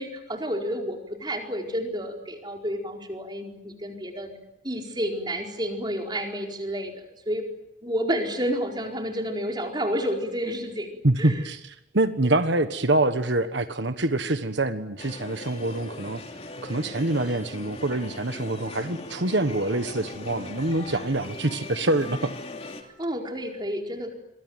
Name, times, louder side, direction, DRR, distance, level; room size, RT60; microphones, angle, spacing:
voice 1, 0.0-4.4 4.6-7.5 7.8-11.5 22.8-24.1, equal, 20° right, 2 dB, 4.6 m, -30 dB
voice 2, 11.0-16.2 16.6-22.2, right 2 dB, 65° right, 9 dB, 1.4 m, -25 dB
sound 1, 15.0-22.8, left 2 dB, 30° left, 3.1 m, -39 dB
27.5 x 23.5 x 9.2 m, 0.87 s
head